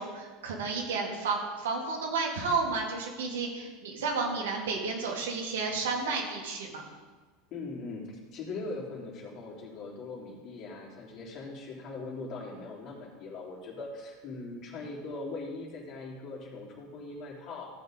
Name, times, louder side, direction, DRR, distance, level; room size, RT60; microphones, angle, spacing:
voice 1, 0.0-6.8, right 4 dB, 70° right, 0 dB, 2.3 m, -32 dB
voice 2, 7.5-8.0 8.3-17.7, left 3 dB, 45° left, -2 dB, 3.2 m, -40 dB
15.0 x 8.2 x 3.8 m, 1.3 s
figure-of-eight pair, 80°, 0 cm